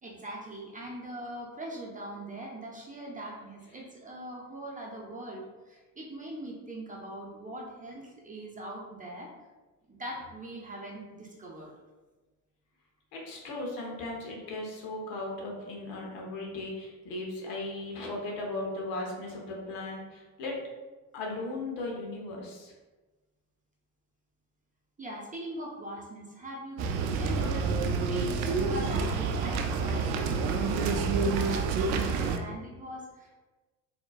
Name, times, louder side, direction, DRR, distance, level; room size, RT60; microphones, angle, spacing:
voice 1, 0.0-9.3 9.9-11.7 25.0-27.7 28.0-33.3, right 1 dB, 15° right, -3 dB, 0.9 m, -42 dB
voice 2, 13.1-20.6 21.1-22.7, left 2 dB, 60° left, -1 dB, 1.2 m, -37 dB
sound 1, 26.8-32.4, right 4 dB, 65° right, 0.6 m, -28 dB
4.3 x 2.9 x 2.4 m, 1.2 s
hypercardioid pair, 65°, 47 cm